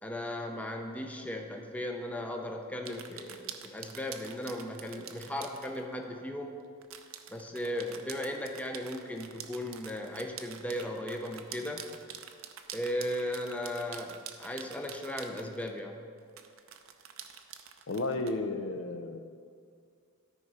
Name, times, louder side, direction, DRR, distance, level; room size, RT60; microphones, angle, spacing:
voice 1, 0.0-6.5 7.3-11.9 12.7-16.0, left 1 dB, 5° left, 2 dB, 0.6 m, -36 dB
sound 1, 2.8-5.8 6.8-15.8 16.4-18.3, right 9 dB, 70° right, 0.6 m, -47 dB
voice 2, 17.9-19.2, left 2 dB, 60° left, 7 dB, 0.5 m, -33 dB
12.5 x 5.0 x 5.5 m, 2.2 s
head